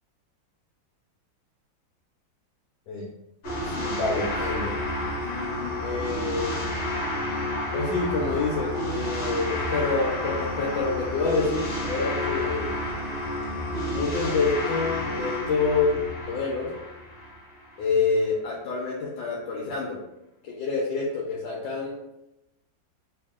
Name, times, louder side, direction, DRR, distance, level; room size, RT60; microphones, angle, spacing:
sound 1, 3.4-17.8, left 1 dB, 50° left, 1.3 m, -30 dB
voice 1, 3.7-4.7 5.2-6.6 7.7-12.7 13.9-16.7 17.8-20.0 20.4-22.0, left 4 dB, 75° left, -2 dB, 1.3 m, -27 dB
3.4 x 2.6 x 3.6 m, 0.89 s
omnidirectional pair, 2.1 m